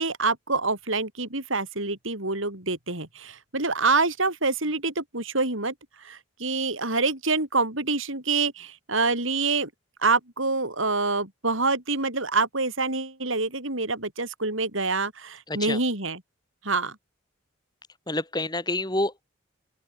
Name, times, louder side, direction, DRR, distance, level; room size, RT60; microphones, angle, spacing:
voice 1, 0.0-5.7 6.0-9.7 10.0-16.2 16.6-17.0, right 3 dB, 75° right, 5.9 m, -26 dB
voice 2, 15.5-15.8 18.1-19.2, left 2 dB, 20° left, 2.7 m, -28 dB
open air
head